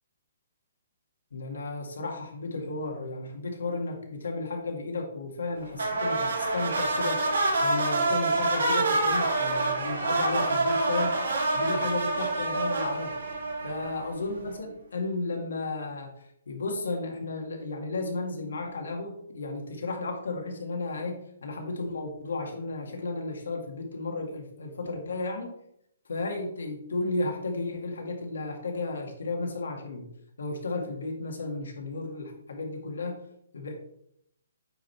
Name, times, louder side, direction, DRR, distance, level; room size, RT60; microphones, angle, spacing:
voice 1, 1.3-7.2 7.6-11.2 11.5-13.1 13.6-16.1 16.5-25.5 26.1-30.1 30.4-33.2 33.5-33.7, left 3 dB, 85° left, 2 dB, 2.2 m, -33 dB
sound 1, 5.8-14.2, right 2 dB, 75° right, 3.0 m, -27 dB
9.2 x 4.0 x 4.5 m, 0.74 s
hypercardioid pair, 170°, 0 cm